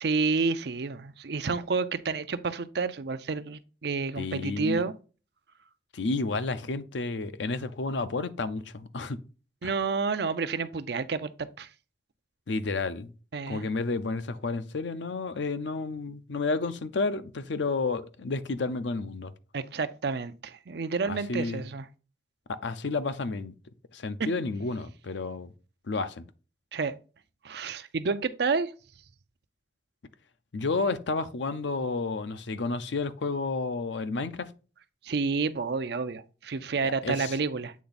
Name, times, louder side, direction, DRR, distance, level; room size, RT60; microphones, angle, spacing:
voice 1, 0.0-4.9 9.6-11.7 13.3-13.6 19.5-21.9 26.7-27.0 27.4-28.7 35.0-37.7, right 4 dB, 60° right, 0.5 m, -30 dB
voice 2, 4.2-4.8 5.9-9.2 9.6-9.7 12.5-13.1 13.5-19.3 21.1-21.6 22.5-23.5 23.9-25.5 25.9-26.3 30.5-34.5 36.8-37.4, left 3 dB, 80° left, 0.6 m, -31 dB
8.3 x 3.4 x 4.0 m
head